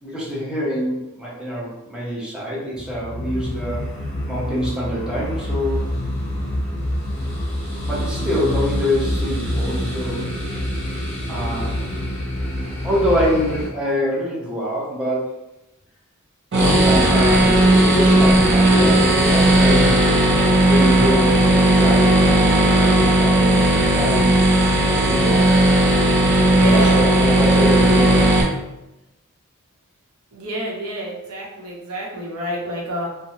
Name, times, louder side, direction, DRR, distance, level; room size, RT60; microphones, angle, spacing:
voice 1, 0.0-3.9 4.3-6.0 7.8-10.3 11.3-11.8 12.8-15.4 16.5-20.0 20.7-24.4 24.9-25.6 26.5-28.3, equal, 5° right, -7 dB, 0.7 m, -25 dB
sound 1, 2.7-13.7, equal, 30° left, 1.1 m, -26 dB
sound 2, 16.5-28.4, right 1 dB, 55° right, 0.6 m, -15 dB
voice 2, 26.5-27.1 30.3-33.1, right 1 dB, 85° right, -3 dB, 0.8 m, -28 dB
3.0 x 2.1 x 2.7 m, 0.94 s
head